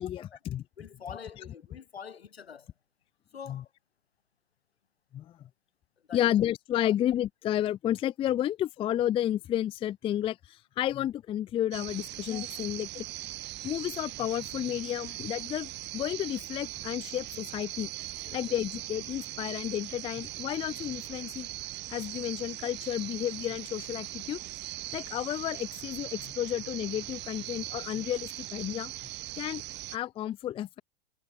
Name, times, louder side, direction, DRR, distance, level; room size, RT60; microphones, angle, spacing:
voice 1, 0.0-0.6 3.5-3.6 5.1-5.3 6.1-13.1 13.6-17.9 18.3-21.5 21.9-24.4 24.9-28.9 29.4-29.6 29.9-30.8, left 12 dB, 20° left, 0.4 m, -31 dB
voice 2, 0.8-2.7 3.3-3.7 6.1-6.3 6.8-7.0 18.3-18.4, left 7 dB, 80° left, 2.3 m, -45 dB
sound 1, 11.7-30.0, right 16 dB, 35° right, 1.8 m, -40 dB
hypercardioid pair, 95°, 30 cm